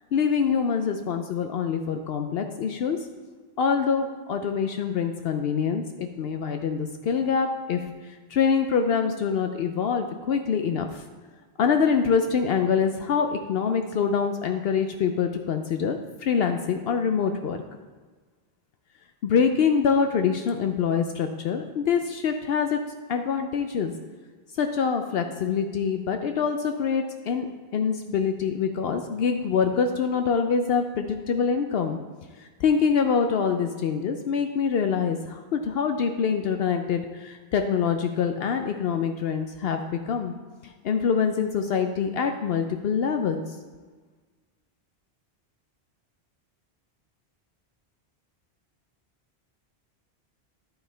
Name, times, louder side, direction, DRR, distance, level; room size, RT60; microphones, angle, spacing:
voice 1, 0.1-3.0 3.6-11.0 11.6-17.6 19.2-22.8 23.1-23.9 24.6-32.0 32.4-40.3 40.6-43.4, left 6 dB, 70° left, 6 dB, 0.8 m, -25 dB
11.0 x 5.6 x 4.4 m, 1.4 s
omnidirectional pair, 1.1 m